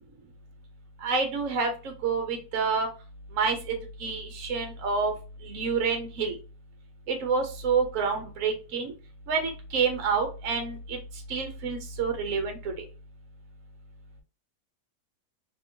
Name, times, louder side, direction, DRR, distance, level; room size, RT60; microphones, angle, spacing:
voice 1, 1.0-1.7 2.0-2.9 3.4-3.7 4.0-5.1 5.4-6.3 7.1-8.9 9.3-11.0 11.3-12.6, right 5 dB, 55° right, 4 dB, 1.1 m, -28 dB
3.4 x 3.0 x 2.7 m, 0.33 s
omnidirectional pair, 1.9 m